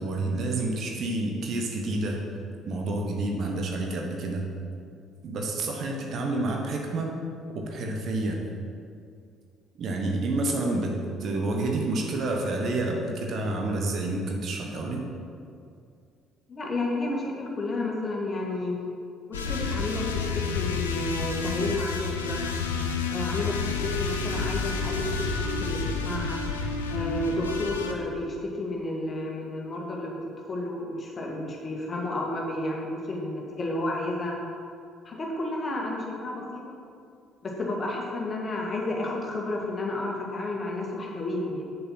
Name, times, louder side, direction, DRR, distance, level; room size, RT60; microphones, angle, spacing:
voice 1, 0.0-2.3 2.6-4.5 5.2-7.1 7.5-8.4 9.8-15.1, right 2 dB, 50° right, 1 dB, 1.2 m, -29 dB
voice 2, 16.5-18.7 19.3-22.4 23.1-25.8 26.0-26.4 26.9-30.2 30.5-34.4 35.1-36.7 37.4-41.6, left 2 dB, 35° left, -1 dB, 1.9 m, -31 dB
sound 1, 19.3-27.9, left 4 dB, 80° left, 0.5 m, -30 dB
7.5 x 6.7 x 5.7 m, 2.3 s
figure-of-eight pair, 50°, 0 cm